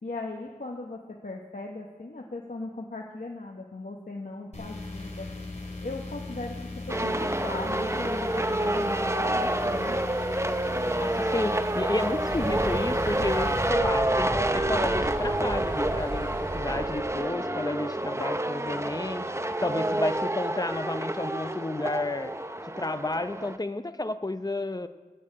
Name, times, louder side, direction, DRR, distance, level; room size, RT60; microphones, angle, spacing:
voice 1, 0.0-5.3 5.8-10.0, left 2 dB, 65° left, 0 dB, 1.2 m, -38 dB
sound 1, 4.5-13.7, left 2 dB, 50° left, 3.1 m, -38 dB
sound 2, 6.9-23.6, right 1 dB, 20° right, 0.7 m, -28 dB
voice 2, 10.9-19.3 19.6-22.3 22.6-24.9, left 2 dB, 25° left, 10 dB, 0.7 m, -31 dB
Thunder / Bicycle, 12.3-17.3, right 1 dB, 85° right, 3.2 m, -36 dB
11.0 x 8.8 x 8.7 m, 1.3 s
wide cardioid pair, 55°, 15 cm